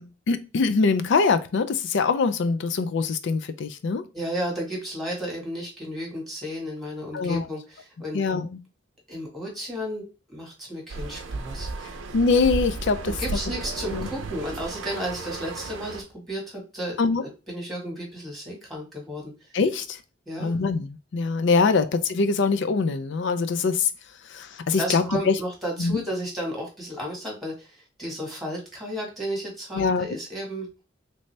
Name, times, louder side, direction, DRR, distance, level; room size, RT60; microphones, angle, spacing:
voice 1, 0.0-4.0 7.1-7.5 8.1-8.5 12.1-13.1 13.9-14.1 17.0-17.2 19.5-20.0 20.4-23.9 24.3-25.4 25.8-26.0 29.7-30.1, left 4 dB, 65° left, 0.4 m, -23 dB
voice 2, 4.1-8.2 9.1-10.0 10.3-12.0 13.2-19.5 20.3-20.6 21.8-21.9 24.8-30.7, equal, ahead, 1.4 m, -33 dB
sound 1, 10.9-16.0, right 3 dB, 85° right, 0.6 m, -34 dB
3.2 x 2.7 x 3.2 m
head